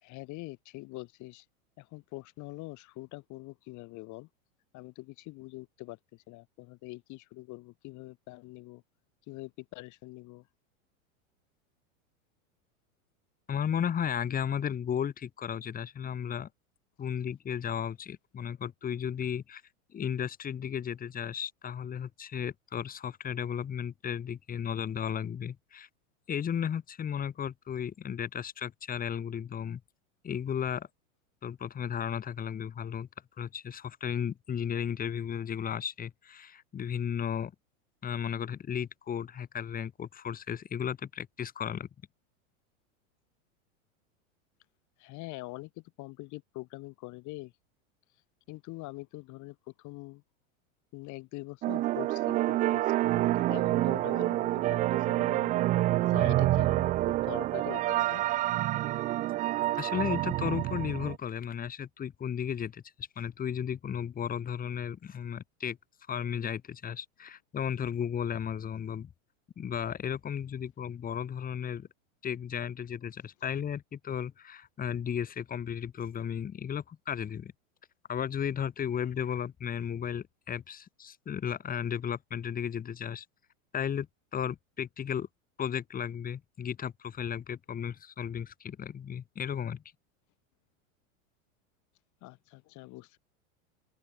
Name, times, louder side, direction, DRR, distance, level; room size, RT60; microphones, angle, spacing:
voice 1, 0.0-1.5 1.8-4.3 4.7-8.8 9.3-10.5 45.0-47.5 48.5-50.2 50.9-52.9 53.3-55.6 56.1-58.2 92.2-93.2, left 22 dB, 45° left, 2.8 m, -44 dB
voice 2, 13.5-16.5 17.0-19.6 19.9-25.9 26.3-29.8 30.2-30.9 31.4-33.1 33.4-37.5 38.0-41.9 59.8-65.8 66.1-69.1 69.6-71.9 72.2-77.5 78.1-83.3 83.7-84.1 84.3-85.3 85.6-89.8, left 8 dB, 20° left, 1.8 m, -34 dB
sound 1, 51.6-61.2, right 16 dB, 20° right, 0.3 m, -28 dB
open air
hypercardioid pair, 120°, 41 cm